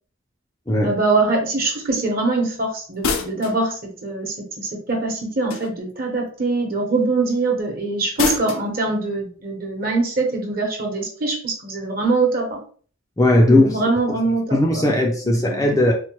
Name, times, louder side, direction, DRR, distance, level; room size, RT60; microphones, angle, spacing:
voice 1, 0.8-12.6 13.5-14.9 15.4-15.8, right 3 dB, 45° right, 0.9 m, -23 dB
sound 1, 3.0-3.6 5.5-6.0 8.2-8.7, left 4 dB, 85° left, 0.5 m, -25 dB
voice 2, 13.2-13.8 14.5-15.9, left 1 dB, 15° left, 0.4 m, -17 dB
4.3 x 2.1 x 3.0 m
head